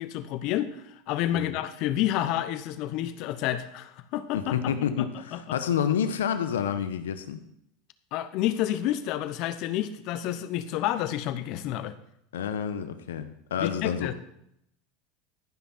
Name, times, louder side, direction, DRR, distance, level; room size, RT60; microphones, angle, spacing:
voice 1, 0.0-4.5 5.0-5.6 8.1-11.9 13.6-14.1, left 12 dB, 60° left, 13 dB, 0.8 m, -29 dB
voice 2, 4.3-7.4 12.3-14.1, left 8 dB, 85° left, 10 dB, 0.9 m, -29 dB
14.5 x 5.9 x 4.3 m, 0.75 s
hypercardioid pair, 100°, 0 cm